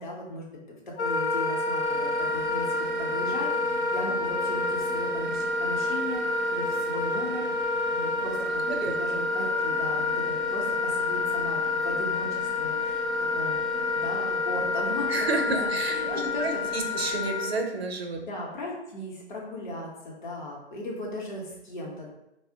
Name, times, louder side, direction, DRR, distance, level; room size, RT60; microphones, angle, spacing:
voice 1, 0.0-13.1 13.3-13.6 13.9-15.1 15.4-16.9 18.2-22.1, left 1 dB, 45° left, -3 dB, 0.8 m, -37 dB
Wind instrument woodwind instrument, 1.0-17.6, left 3 dB, 75° left, 0.7 m, -28 dB
sound 1, 1.8-17.3, equal, 15° right, 0.4 m, -45 dB
voice 2, 15.1-18.2, right 3 dB, 60° right, 3 dB, 0.6 m, -30 dB
3.2 x 2.0 x 2.6 m, 0.87 s
hypercardioid pair, 150°, 35 cm